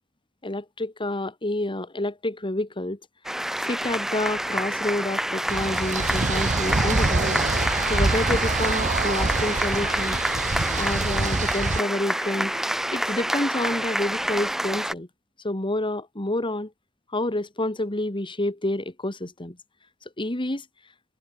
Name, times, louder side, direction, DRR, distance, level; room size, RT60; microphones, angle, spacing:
voice 1, 0.4-3.0 3.6-7.5 7.9-10.2 10.8-12.5 12.9-15.1 15.4-16.7 17.1-19.6 20.2-20.7, left 1 dB, 25° left, 2.3 m, -28 dB
sound 1, 3.2-14.9, right 1 dB, ahead, 0.3 m, -27 dB
sound 2, 5.5-11.8, right 3 dB, 35° right, 0.9 m, -26 dB
open air
head